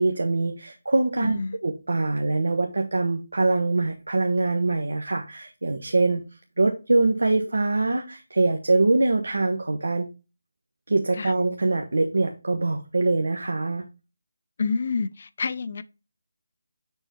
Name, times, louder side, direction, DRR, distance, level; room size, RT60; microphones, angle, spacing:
voice 1, 0.0-6.3 6.6-10.1 10.9-13.8, right 2 dB, 80° right, 1.1 m, -23 dB
voice 2, 1.2-1.6 11.2-11.3 14.6-15.8, left 4 dB, 45° left, 0.6 m, -28 dB
7.0 x 5.3 x 3.0 m
figure-of-eight pair, 165°, 0 cm